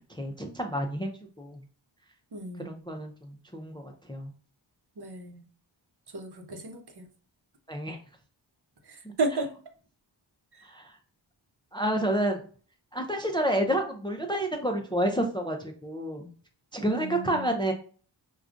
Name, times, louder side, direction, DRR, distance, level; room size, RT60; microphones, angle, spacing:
voice 1, 0.1-1.6 2.6-4.3 7.7-8.0 10.6-11.0 11.7-12.4 12.9-16.3 16.7-17.7, right 1 dB, 10° left, 3 dB, 0.4 m, -29 dB
voice 2, 2.3-2.7 5.0-5.4 6.1-7.1 8.9-9.5 10.5-10.6 16.8-17.5, right 2 dB, 55° right, 3 dB, 0.8 m, -34 dB
4.8 x 2.3 x 2.5 m, 0.41 s
wide cardioid pair, 80°, 47 cm